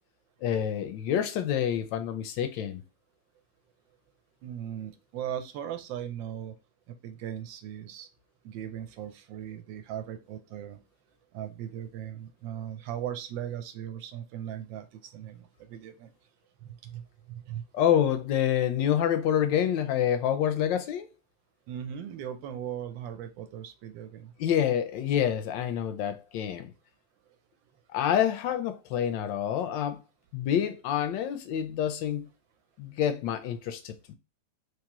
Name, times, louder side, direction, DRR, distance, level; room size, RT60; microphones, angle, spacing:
voice 1, 0.4-2.8 17.7-21.1 24.4-26.7 27.9-30.0 30.3-32.3 32.8-34.1, left 9 dB, 80° left, 1.2 m, -27 dB
voice 2, 4.4-6.5 6.9-8.1 8.4-10.8 11.3-16.1 16.6-17.6 21.7-24.3, right 10 dB, 85° right, 1.3 m, -38 dB
3.6 x 3.2 x 2.9 m
omnidirectional pair, 2.0 m